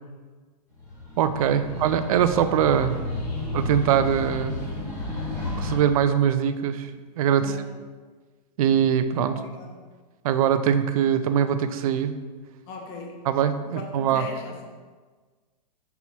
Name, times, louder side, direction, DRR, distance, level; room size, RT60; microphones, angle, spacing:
sound 1, 0.8-5.8, left 2 dB, 10° left, 1.5 m, -32 dB
voice 1, 1.2-3.0 3.5-4.7 5.6-6.9 7.2-7.6 8.6-9.4 10.2-12.2 13.2-14.3, right 9 dB, 55° right, 10 dB, 0.5 m, -22 dB
voice 2, 9.3-9.8 12.7-13.1 13.7-14.6, left 3 dB, 40° left, 1 dB, 1.1 m, -39 dB
5.6 x 4.7 x 4.1 m, 1.4 s
hypercardioid pair, 150°, 21 cm